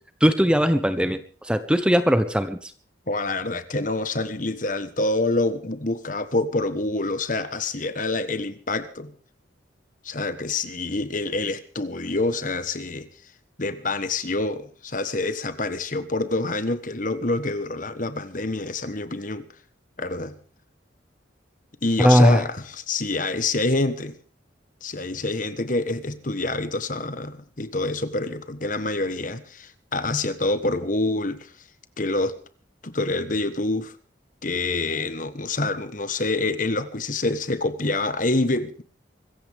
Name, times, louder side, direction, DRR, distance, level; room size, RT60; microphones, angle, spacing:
voice 1, 0.2-2.7 22.0-22.4, equal, 5° right, 10 dB, 1.1 m, -19 dB
voice 2, 3.1-9.1 10.0-13.1 13.6-19.5 20.0-20.4 21.8-24.2 24.8-31.5 32.0-32.4 32.8-34.0 34.4-38.8, left 2 dB, 45° left, 11 dB, 1.4 m, -26 dB
24.5 x 15.0 x 3.6 m, 0.40 s
head